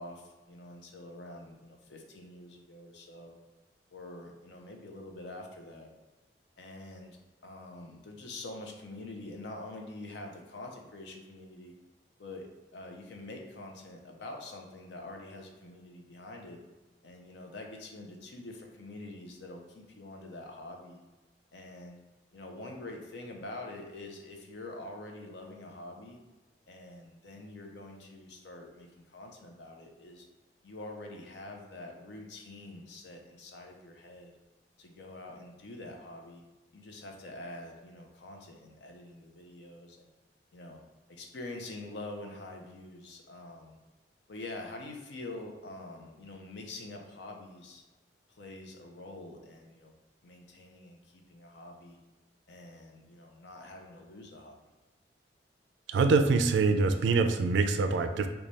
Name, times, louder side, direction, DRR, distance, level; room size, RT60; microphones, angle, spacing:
voice 1, 0.0-3.4 3.9-5.9 6.6-11.7 12.2-16.6 17.0-21.0 21.5-22.0 22.3-26.2 26.7-30.3 30.6-34.3 34.8-36.4 36.7-40.1 40.5-40.8 41.1-43.8 44.3-47.8 48.3-49.9 50.2-52.0 52.5-54.6, left 2 dB, 75° left, 2 dB, 0.6 m, -45 dB
voice 2, 55.9-58.3, right 4 dB, 85° right, 8 dB, 0.3 m, -25 dB
3.2 x 2.2 x 3.9 m, 1.1 s
head